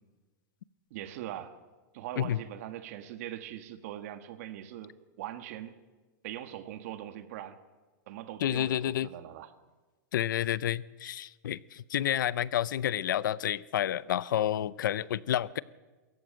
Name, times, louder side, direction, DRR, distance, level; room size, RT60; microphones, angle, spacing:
voice 1, 0.9-1.6 1.9-5.8 6.2-7.6 8.1-9.5, right 12 dB, 50° right, 10 dB, 1.5 m, -41 dB
voice 2, 8.4-9.1 10.1-15.6, left 11 dB, 85° left, 20 dB, 0.6 m, -30 dB
22.0 x 14.5 x 8.9 m, 1.3 s
supercardioid pair, 165°, 10 cm